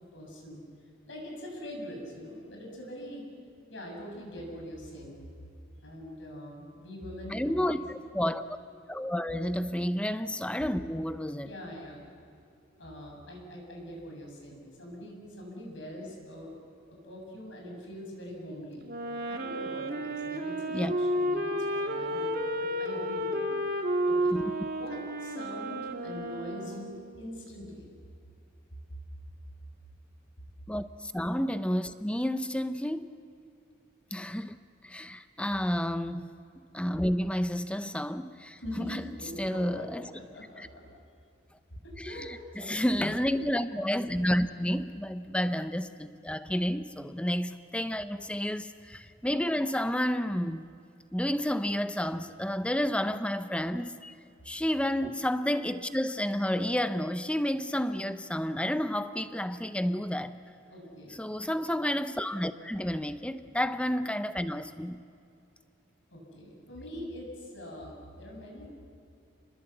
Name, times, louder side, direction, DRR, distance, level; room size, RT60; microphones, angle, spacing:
voice 1, 0.1-0.6 1.1-3.3 3.7-5.2 5.8-7.8 11.4-12.0 12.8-16.5 16.9-18.8 19.3-24.4 24.8-27.9 38.6-40.9 42.1-43.0 60.7-61.3 66.1-68.7, equal, 70° left, 7.2 m, -43 dB
voice 2, 7.3-7.8 8.1-8.4 8.9-11.5 20.7-20.9 24.3-24.4 30.7-33.1 34.1-36.3 36.7-39.1 39.4-40.1 40.6-40.7 42.0-50.7 51.1-54.1 54.5-60.4 61.1-65.0, equal, 5° left, 0.7 m, -30 dB
Wind instrument woodwind instrument, 18.8-27.2, equal, 50° right, 2.0 m, -32 dB
28.5 x 21.0 x 8.0 m
head